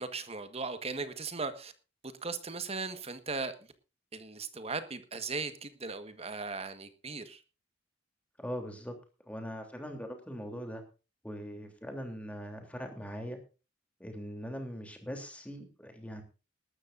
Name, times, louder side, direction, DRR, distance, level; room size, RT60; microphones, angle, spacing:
voice 1, 0.0-1.7 2.0-3.5 4.1-7.4, right 4 dB, 30° right, 10 dB, 1.5 m, -38 dB
voice 2, 8.4-8.9 9.2-10.8 11.2-13.4 14.0-16.2, equal, 5° left, 4 dB, 3.3 m, -41 dB
19.5 x 13.0 x 2.6 m, 0.32 s
head